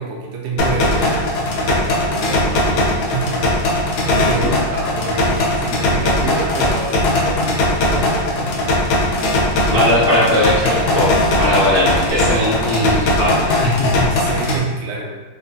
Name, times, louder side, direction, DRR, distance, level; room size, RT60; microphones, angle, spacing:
voice 1, 0.0-3.7 4.0-8.9 14.1-15.1, right 4 dB, 85° right, -1 dB, 1.6 m, -27 dB
sound 1, 0.6-14.6, left 1 dB, 75° left, 0.9 m, -19 dB
voice 2, 9.7-14.1, left 1 dB, 50° left, -11 dB, 0.6 m, -18 dB
3.8 x 2.3 x 2.6 m, 1.3 s
omnidirectional pair, 2.4 m